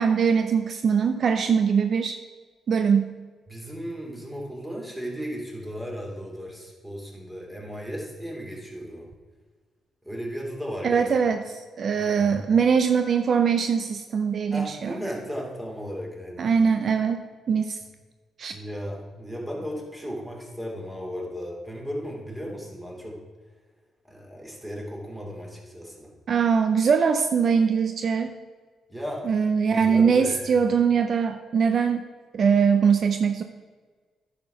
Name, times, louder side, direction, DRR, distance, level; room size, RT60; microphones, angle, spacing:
voice 1, 0.0-2.2 2.7-3.1 10.8-15.0 16.4-17.8 18.4-18.5 26.3-28.3 29.3-32.1 32.3-33.4, right 6 dB, 60° right, 7 dB, 0.6 m, -22 dB
voice 2, 3.5-9.1 10.0-11.1 11.9-12.4 14.5-16.5 18.5-23.2 24.1-26.1 28.9-29.4 29.7-30.6, equal, 10° right, -2 dB, 3.1 m, -35 dB
10.0 x 5.1 x 6.0 m, 1.4 s
supercardioid pair, 60°, 0 cm